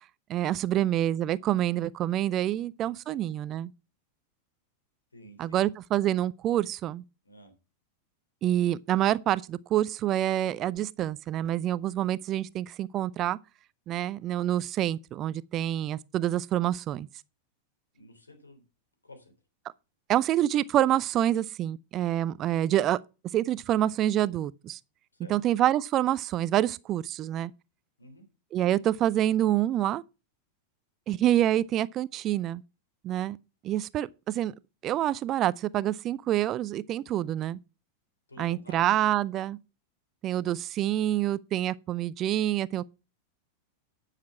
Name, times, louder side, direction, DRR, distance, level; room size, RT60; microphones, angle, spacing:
voice 1, 0.3-3.7 5.4-7.0 8.4-13.4 13.9-17.1 20.1-23.0 23.3-24.8 25.3-27.5 28.5-30.0 31.1-32.6 33.0-33.4 33.6-34.5 34.8-37.6 38.4-39.6 40.2-42.8, right 12 dB, 35° right, 0.4 m, -27 dB
voice 2, 5.1-5.6 7.2-7.5 17.9-18.6 19.0-19.3 25.1-25.3 28.0-28.2 38.3-38.9, left 1 dB, 80° left, 3.5 m, -50 dB
10.5 x 6.6 x 5.8 m
figure-of-eight pair, 90°, 0 cm